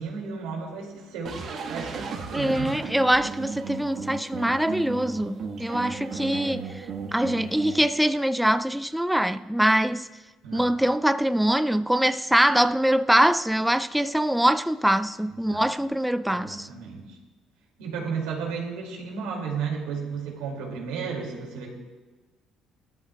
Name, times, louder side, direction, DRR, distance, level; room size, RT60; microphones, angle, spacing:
voice 1, 0.0-2.8 10.4-10.7 15.3-15.7 16.3-17.2 17.8-21.7, right 5 dB, 90° right, 2.4 m, -33 dB
sound 1, 1.3-7.8, right 5 dB, 55° right, 1.4 m, -35 dB
voice 2, 2.3-10.1 10.5-16.7, right 1 dB, 5° right, 0.3 m, -23 dB
17.0 x 13.0 x 2.3 m
supercardioid pair, 80°, 0 cm